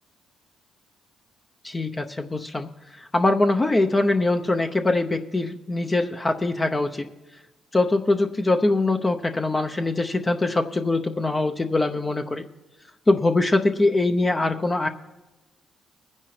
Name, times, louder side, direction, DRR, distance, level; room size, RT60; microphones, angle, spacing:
voice 1, 1.6-7.1 7.7-12.4 13.1-14.9, left 2 dB, 25° left, 5 dB, 0.7 m, -23 dB
21.0 x 9.8 x 3.3 m, 1.1 s
supercardioid pair, 70°, 0 cm